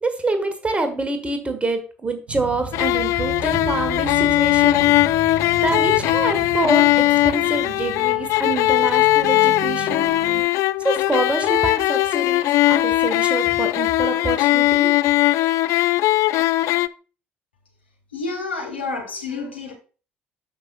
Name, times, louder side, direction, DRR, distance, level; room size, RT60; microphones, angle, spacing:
voice 1, 0.0-4.9 5.6-10.1 10.8-14.9, right 2 dB, 20° right, 1.7 m, -26 dB
sound 1, 2.3-10.4, right 4 dB, 65° right, 2.0 m, -35 dB
sound 2, 2.7-16.9, left 16 dB, 60° left, 0.3 m, -19 dB
voice 2, 18.1-19.7, left 3 dB, 90° left, 1.6 m, -29 dB
12.5 x 5.6 x 2.4 m
figure-of-eight pair, 50°, 6 cm